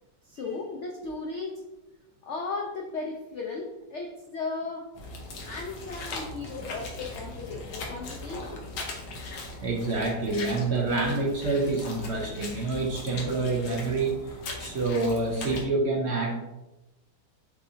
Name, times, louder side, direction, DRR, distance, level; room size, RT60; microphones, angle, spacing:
voice 1, 0.3-1.5 2.2-4.9 5.5-8.7, left 3 dB, 90° left, 0 dB, 0.6 m, -36 dB
sound 1, 4.9-15.6, left 2 dB, 70° left, 1.4 m, -39 dB
voice 2, 9.6-16.3, right 3 dB, 60° right, 0 dB, 0.7 m, -27 dB
7.3 x 2.7 x 2.6 m, 0.99 s
omnidirectional pair, 1.9 m